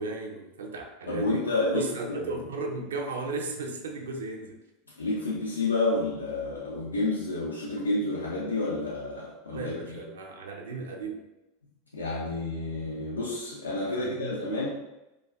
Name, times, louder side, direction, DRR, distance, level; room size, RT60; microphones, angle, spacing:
voice 1, 0.0-1.4 1.7-4.6 9.5-11.2 13.8-14.7, right 3 dB, 65° right, 2 dB, 0.4 m, -35 dB
voice 2, 1.1-2.4 5.0-10.0 11.9-14.7, left 2 dB, 80° left, -6 dB, 0.4 m, -30 dB
2.4 x 2.2 x 2.3 m, 0.96 s
figure-of-eight pair, 80°, 0 cm